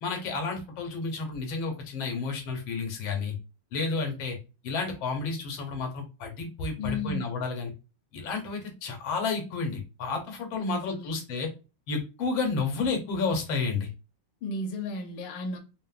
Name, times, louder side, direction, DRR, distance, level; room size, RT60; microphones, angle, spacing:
voice 1, 0.0-3.3 3.7-4.4 4.6-7.7 8.1-11.5 11.9-13.9, left 4 dB, 90° left, 1.5 m, -31 dB
voice 2, 6.8-7.2 10.6-11.2 14.4-15.6, left 2 dB, 75° left, 1.2 m, -34 dB
3.6 x 2.0 x 2.3 m
omnidirectional pair, 2.1 m